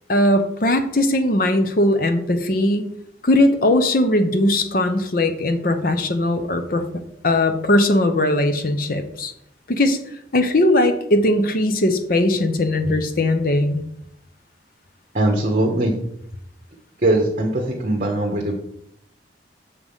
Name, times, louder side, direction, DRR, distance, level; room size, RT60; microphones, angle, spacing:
voice 1, 0.1-2.9 3.2-6.8 7.2-9.3 9.7-10.0 10.3-13.8, left 1 dB, 50° left, 7 dB, 0.8 m, -19 dB
voice 2, 15.1-15.9 17.0-18.5, right 1 dB, 40° right, 0 dB, 1.1 m, -20 dB
6.8 x 5.1 x 5.5 m, 0.75 s
head